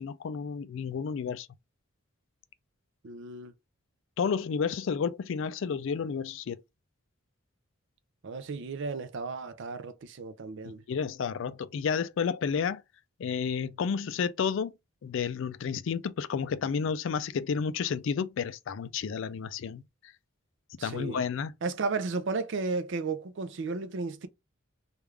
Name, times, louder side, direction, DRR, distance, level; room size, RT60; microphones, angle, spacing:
voice 1, 0.0-1.5 4.2-6.6 10.9-12.8 13.2-14.7 15.0-19.8 20.8-21.5, left 6 dB, 65° left, 0.3 m, -31 dB
voice 2, 3.0-3.5 8.2-10.8 20.8-21.2 21.6-24.3, right 4 dB, 60° right, 0.5 m, -34 dB
3.4 x 2.4 x 3.1 m
head